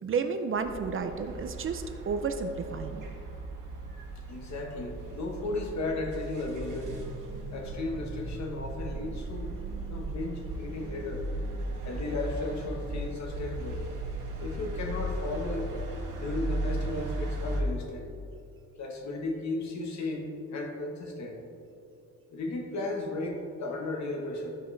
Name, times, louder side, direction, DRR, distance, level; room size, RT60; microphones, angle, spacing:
voice 1, 0.0-3.0, right 5 dB, 40° right, 7 dB, 0.5 m, -31 dB
sound 1, 0.5-17.6, right 1 dB, 90° right, 1.5 m, -36 dB
voice 2, 4.3-6.9 7.5-9.6 9.9-11.2 11.8-13.8 14.4-15.7 16.2-18.1 18.8-21.4 22.3-24.6, left 2 dB, 60° left, 2 dB, 1.3 m, -35 dB
14.0 x 5.0 x 3.3 m, 2.6 s
wide cardioid pair, 150°, 31 cm